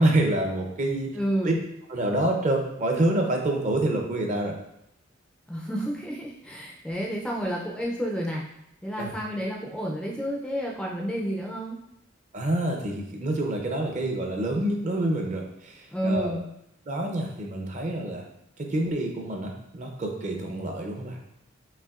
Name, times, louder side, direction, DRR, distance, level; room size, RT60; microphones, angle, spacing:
voice 1, 0.0-1.2 1.4-1.5 1.9-4.5 9.0-9.1 12.3-16.4 16.9-18.2 18.6-21.2, right 1 dB, 40° right, 2 dB, 0.6 m, -27 dB
voice 2, 1.1-1.6 5.5-8.4 8.8-11.8 15.9-16.4, equal, 5° left, -2 dB, 0.4 m, -30 dB
5.5 x 2.5 x 2.4 m, 0.81 s
head